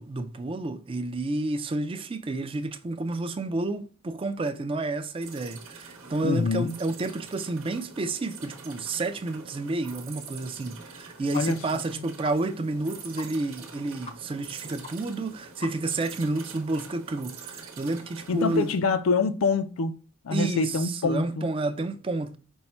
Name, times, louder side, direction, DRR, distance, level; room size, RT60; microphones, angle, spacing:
voice 1, 0.0-18.7 20.3-22.4, right 2 dB, 25° right, 0.3 m, -30 dB
sound 1, 5.2-18.8, right 5 dB, 90° right, 1.0 m, -45 dB
voice 2, 6.2-6.7 11.3-11.6 18.3-19.9 20.2-21.5, left 4 dB, 85° left, 0.4 m, -25 dB
sound 2, 11.3-11.5 11.8-11.9 12.2-12.4 12.7-12.8 13.2-13.3 13.6-13.7 14.0-14.2 14.4-14.5 14.8-14.9 15.2-15.3 15.6-16.0, left 3 dB, 30° left, 0.5 m, -41 dB
5.4 x 2.1 x 4.3 m
head